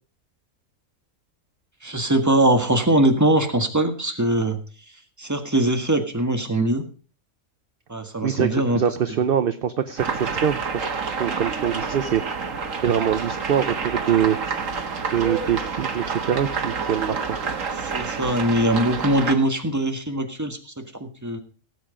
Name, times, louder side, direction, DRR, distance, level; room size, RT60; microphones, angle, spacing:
voice 1, 1.8-4.6 5.2-6.8 7.9-8.8 17.8-21.4, right 1 dB, 15° right, 5 dB, 1.6 m, -22 dB
voice 2, 8.2-12.4 12.8-14.4 15.1-17.5, right 9 dB, 50° right, 11 dB, 0.8 m, -24 dB
sound 1, 10.0-19.3, right 5 dB, 70° right, 1.9 m, -28 dB
17.5 x 8.1 x 5.0 m, 0.38 s
omnidirectional pair, 1.4 m